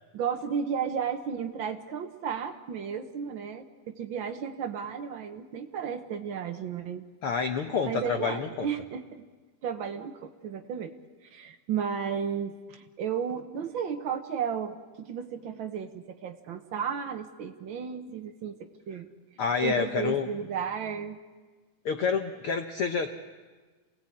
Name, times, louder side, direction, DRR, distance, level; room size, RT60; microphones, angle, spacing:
voice 1, 0.1-7.0 7.9-9.2 9.6-10.9 11.3-19.1 19.6-21.2, right 7 dB, 75° right, 5 dB, 1.1 m, -33 dB
voice 2, 7.2-8.7 19.4-20.3 21.8-23.1, left 5 dB, 75° left, 6 dB, 1.2 m, -28 dB
28.0 x 18.0 x 8.6 m, 1.4 s
omnidirectional pair, 3.8 m